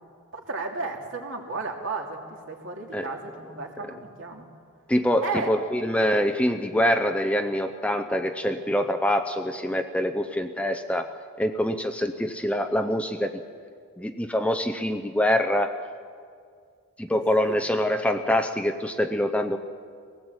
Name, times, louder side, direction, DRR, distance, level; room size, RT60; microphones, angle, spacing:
voice 1, 0.3-4.5 5.2-5.5 17.1-17.6, right 3 dB, 60° right, 1 dB, 2.7 m, -34 dB
voice 2, 4.9-11.1 11.4-13.4 14.0-15.8 17.0-19.6, left 1 dB, 5° left, 7 dB, 0.6 m, -25 dB
20.5 x 18.0 x 8.0 m, 2.2 s
head